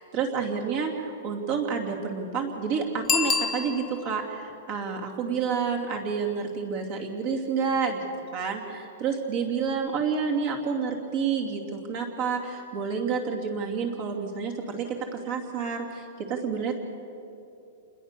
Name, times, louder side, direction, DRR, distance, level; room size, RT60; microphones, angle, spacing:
voice 1, 0.0-8.1 8.3-14.9 15.1-16.8, right 5 dB, 35° right, 1 dB, 2.7 m, -29 dB
Bicycle bell, 3.0-4.2 9.7-9.8, left 5 dB, 15° left, 0.9 m, -27 dB
28.0 x 20.5 x 6.8 m, 2.7 s
supercardioid pair, 175°, 0 cm